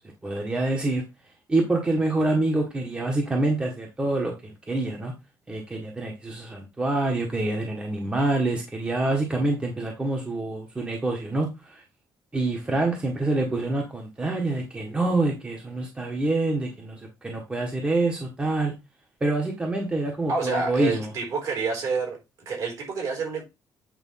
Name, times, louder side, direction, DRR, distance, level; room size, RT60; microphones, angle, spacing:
voice 1, 0.2-1.0 1.5-5.1 5.5-11.8 12.3-18.7 19.2-21.1, right 2 dB, 15° right, 1.4 m, -26 dB
voice 2, 20.3-22.2 22.5-23.4, right 4 dB, 55° right, 4.0 m, -28 dB
8.9 x 3.2 x 5.7 m
cardioid pair, 155°, 7 cm